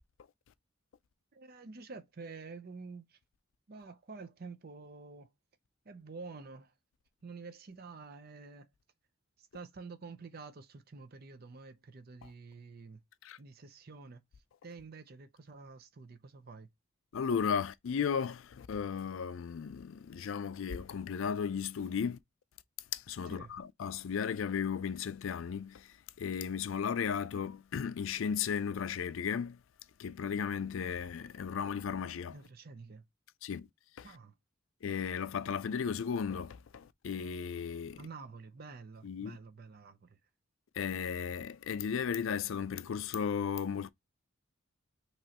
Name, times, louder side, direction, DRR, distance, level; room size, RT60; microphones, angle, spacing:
voice 1, 1.3-3.2 3.7-5.3 5.8-6.7 7.2-8.7 9.4-13.0 13.4-16.7 23.3-23.5 32.3-33.1 34.0-34.4 38.0-40.2, right 4 dB, 45° right, 0.5 m, -49 dB
voice 2, 17.1-22.2 22.9-29.6 30.0-32.3 33.4-33.7 34.0-34.1 34.8-38.0 39.0-39.4 40.7-43.9, left 7 dB, 70° left, 0.4 m, -35 dB
5.2 x 3.0 x 2.8 m
head